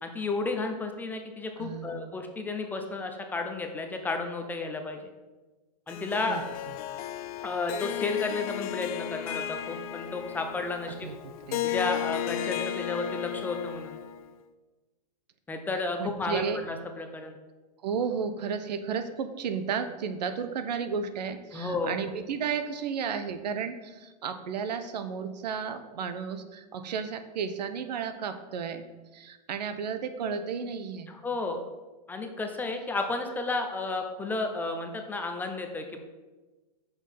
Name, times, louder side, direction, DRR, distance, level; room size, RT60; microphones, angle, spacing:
voice 1, 0.0-5.1 5.9-6.4 7.4-11.1 11.6-14.0 15.5-17.4 21.5-22.0 31.1-31.6 32.1-36.0, left 3 dB, 10° left, 5 dB, 0.5 m, -32 dB
voice 2, 1.6-2.1 6.3-6.4 11.0-11.6 16.0-16.6 17.8-28.8 29.1-31.1, right 6 dB, 80° right, 10 dB, 0.9 m, -33 dB
Harp, 5.9-14.3, left 11 dB, 55° left, 0.6 m, -34 dB
6.2 x 5.3 x 5.8 m, 1.2 s
supercardioid pair, 150°, 21 cm